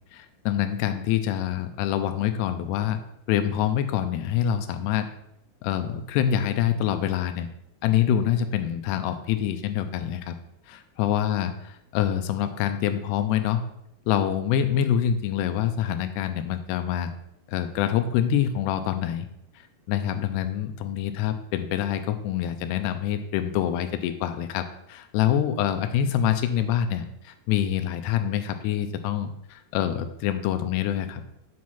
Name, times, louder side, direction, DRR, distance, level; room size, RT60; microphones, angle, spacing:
voice 1, 0.1-3.0 3.3-5.1 5.6-7.5 7.8-10.4 10.7-13.6 14.1-17.1 17.5-19.3 19.9-31.2, left 10 dB, 85° left, 9 dB, 2.7 m, -26 dB
8.4 x 4.7 x 5.7 m, 0.80 s
omnidirectional pair, 4.8 m